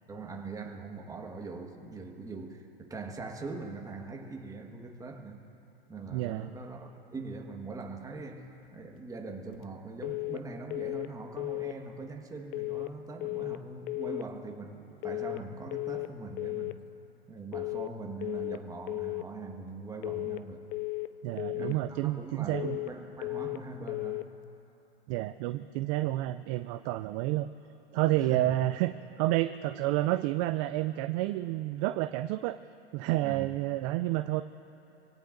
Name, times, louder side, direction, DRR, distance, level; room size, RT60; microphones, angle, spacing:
voice 1, 0.1-5.5 5.9-16.8 17.3-20.6 21.3-24.3 28.3-28.5 33.2-33.5 34.0-34.1, right 3 dB, 10° right, 2 dB, 1.5 m, -42 dB
voice 2, 6.1-6.5 21.2-22.8 25.1-27.5 27.9-32.6 32.9-34.4, right 16 dB, 35° right, 11 dB, 0.4 m, -30 dB
sound 1, 10.0-10.4 10.7-11.1 11.4-11.8 12.5-12.9 13.2-13.6 13.9-14.3 15.0-15.4 15.7-16.1 16.4-16.8 17.5-17.9 18.2-18.6 18.9-19.3 20.0-20.4 20.7-21.1 21.4-21.8 22.5-22.9 23.2-23.6 23.9-24.3, left 22 dB, 30° left, 0.5 m, -34 dB
26.5 x 17.5 x 2.6 m, 2.9 s
hypercardioid pair, 115°, 31 cm